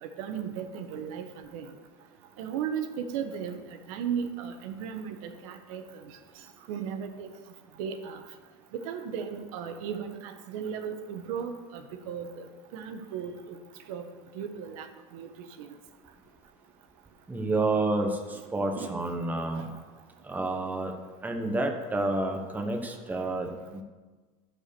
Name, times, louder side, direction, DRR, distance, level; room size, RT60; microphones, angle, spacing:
voice 1, 0.0-1.7 2.4-6.2 6.7-7.3 7.8-8.2 8.7-12.5 12.7-13.6 13.9-14.1 14.3-15.7 18.8-18.9 19.5-19.7, right 7 dB, 75° right, 6 dB, 1.1 m, -36 dB
voice 2, 17.3-19.7 20.2-20.9 21.2-23.8, right 2 dB, 10° right, 3 dB, 1.0 m, -29 dB
11.5 x 4.7 x 6.8 m, 1.3 s
supercardioid pair, 135°, 18 cm